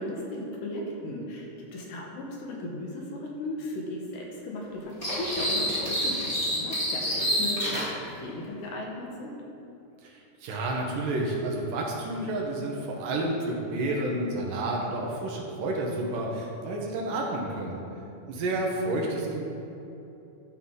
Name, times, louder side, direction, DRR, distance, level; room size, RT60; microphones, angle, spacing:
voice 1, 0.0-7.9 8.2-9.4, left 1 dB, 70° left, -1 dB, 2.5 m, -36 dB
sound 1, 5.0-7.9, equal, 85° left, 0.5 m, -28 dB
voice 2, 10.0-17.8 18.3-19.4, right 2 dB, 75° right, -1 dB, 2.5 m, -30 dB
12.0 x 5.7 x 3.7 m, 2.9 s
omnidirectional pair, 4.1 m